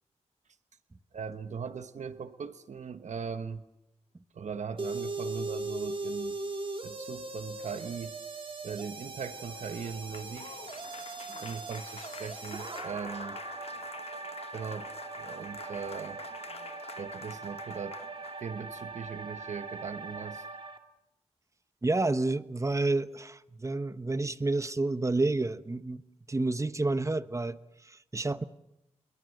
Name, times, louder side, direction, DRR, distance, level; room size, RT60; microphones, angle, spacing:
voice 1, 1.1-3.6 4.3-6.4 6.8-8.1 8.6-10.6 11.4-13.4 14.5-14.9 15.2-16.2 17.0-18.0 18.4-20.4, right 6 dB, 80° right, 1.2 m, -39 dB
sound 1, 4.8-20.8, right 3 dB, 45° right, 2.1 m, -40 dB
Applause, 9.3-18.5, left 5 dB, 55° left, 1.0 m, -48 dB
voice 2, 21.8-26.0 26.3-28.4, right 2 dB, 25° right, 1.1 m, -29 dB
29.5 x 22.0 x 6.6 m
wide cardioid pair, 75°, 12 cm